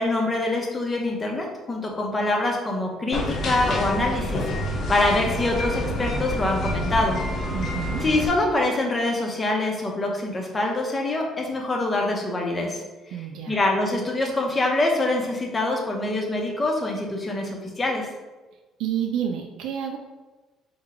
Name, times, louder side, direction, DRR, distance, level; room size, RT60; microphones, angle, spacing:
voice 1, 0.0-4.5 4.9-7.2 8.0-12.8 13.5-18.1, left 2 dB, 20° left, 0 dB, 0.8 m, -25 dB
sound 1, 3.1-8.3, left 1 dB, 50° left, 0.9 m, -28 dB
voice 2, 7.5-8.0 13.1-13.6 18.8-20.0, right 9 dB, 80° right, 3 dB, 0.4 m, -29 dB
3.9 x 2.3 x 4.3 m, 1.2 s
cardioid pair, 120°, 0 cm